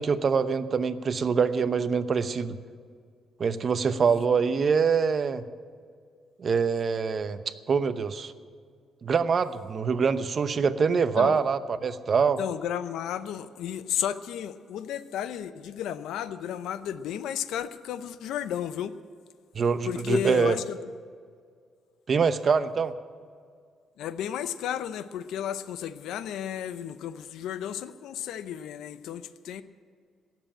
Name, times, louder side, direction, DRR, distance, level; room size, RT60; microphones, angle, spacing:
voice 1, 0.0-2.6 3.4-5.4 6.4-8.3 9.0-12.4 19.5-20.5 22.1-22.9, right 5 dB, 45° right, 12 dB, 0.8 m, -25 dB
voice 2, 4.1-4.4 10.9-11.4 12.4-18.9 19.8-20.8 24.0-29.6, left 9 dB, 85° left, 13 dB, 0.7 m, -33 dB
17.5 x 7.6 x 8.8 m, 2.1 s
cardioid pair, 90°, 0 cm